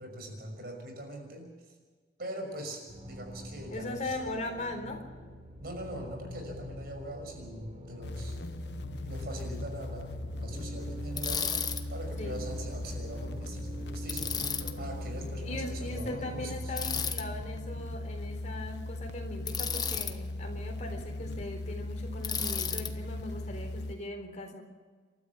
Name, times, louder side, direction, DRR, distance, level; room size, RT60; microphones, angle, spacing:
voice 1, 0.0-1.5 2.2-4.2 5.6-8.4 9.0-11.5 11.9-14.3 14.8-16.7, right 1 dB, 60° right, 4 dB, 5.9 m, -42 dB
sound 1, 2.9-15.2, equal, 35° right, 3.3 m, -45 dB
voice 2, 3.7-5.0 12.2-12.5 15.4-24.6, left 2 dB, 40° left, 4 dB, 3.9 m, -39 dB
sound 2, 8.0-23.9, left 1 dB, 70° left, 0.8 m, -38 dB
Bicycle, 11.2-11.8 14.1-14.7 16.8-17.2 19.5-20.1 22.2-22.9, left 7 dB, 25° left, 1.1 m, -33 dB
28.5 x 13.0 x 7.2 m, 1.5 s
head